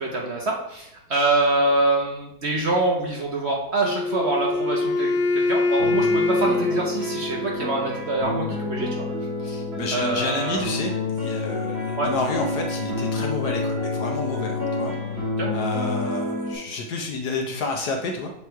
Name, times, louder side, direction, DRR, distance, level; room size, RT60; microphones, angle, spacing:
voice 1, 0.0-9.1 9.9-10.7 12.0-12.1 15.4-15.5, right 2 dB, 60° right, -1 dB, 0.7 m, -25 dB
Wind instrument woodwind instrument, 3.8-7.9, left 3 dB, 85° left, 1.4 m, -24 dB
sound 1, 5.8-16.6, left 2 dB, 75° right, 2.9 m, -28 dB
voice 2, 9.4-14.9 15.5-18.3, left 3 dB, 65° left, 3 dB, 1.1 m, -30 dB
6.9 x 3.2 x 4.5 m, 0.83 s
omnidirectional pair, 2.2 m